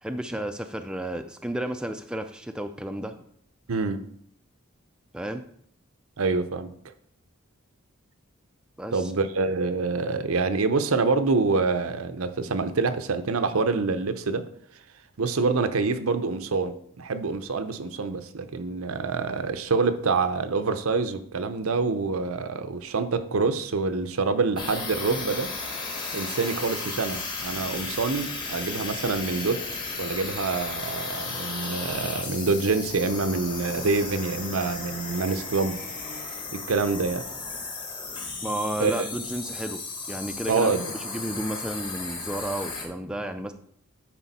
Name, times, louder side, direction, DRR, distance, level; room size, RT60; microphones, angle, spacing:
voice 1, 0.0-3.1 5.1-5.4 8.8-9.1 38.4-39.8 40.1-40.7 41.0-43.5, right 1 dB, 5° right, 6 dB, 0.3 m, -32 dB
voice 2, 3.7-4.0 6.2-6.7 8.9-14.4 15.2-25.5 26.1-29.6 30.0-35.8 36.5-37.3 38.8-39.0 40.5-40.8, right 4 dB, 80° right, 10 dB, 0.6 m, -26 dB
sound 1, 24.6-42.9, left 3 dB, 20° left, 1.1 m, -35 dB
sound 2, 30.2-36.4, left 2 dB, 40° left, 1.6 m, -46 dB
10.0 x 4.4 x 4.1 m, 0.65 s
head